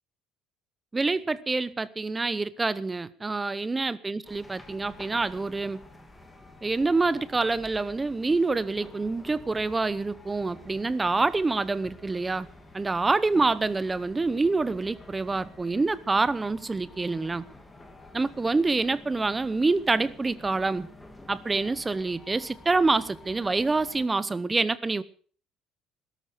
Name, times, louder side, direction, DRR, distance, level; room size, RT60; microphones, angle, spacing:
voice 1, 0.9-5.8 6.6-12.5 12.7-17.4 18.1-20.9 21.3-25.0, right 3 dB, 15° right, 0.8 m, -26 dB
sound 1, 4.2-24.1, left 2 dB, 10° left, 2.2 m, -49 dB
17.0 x 13.5 x 5.0 m
cardioid pair, 165°, 0 cm